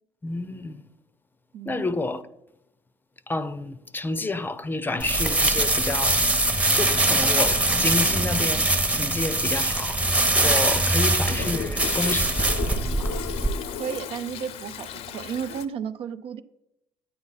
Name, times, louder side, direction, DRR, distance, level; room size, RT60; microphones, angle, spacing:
voice 1, 0.2-0.8 1.6-2.2 3.3-6.3 6.7-10.0 10.3-13.2, left 2 dB, 20° left, 0.6 m, -30 dB
voice 2, 1.5-1.9 13.8-16.4, right 7 dB, 60° right, 0.6 m, -33 dB
sound 1, 5.0-13.5, right 2 dB, 10° right, 0.9 m, -22 dB
Toilet flush, 10.5-15.6, left 8 dB, 65° left, 0.7 m, -35 dB
9.8 x 8.6 x 4.0 m
supercardioid pair, 75°, 11 cm